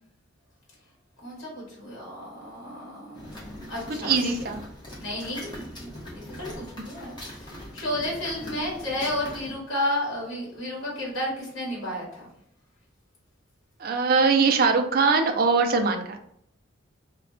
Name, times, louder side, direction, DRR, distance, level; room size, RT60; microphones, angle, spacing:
voice 1, 1.2-4.5 5.0-12.3, left 1 dB, 70° left, -5 dB, 1.1 m, -32 dB
sound 1, 3.1-9.5, left 1 dB, 20° left, 0.6 m, -41 dB
voice 2, 4.0-4.6 13.8-16.2, right 4 dB, 45° right, 5 dB, 0.3 m, -22 dB
2.3 x 2.1 x 3.6 m, 0.72 s
head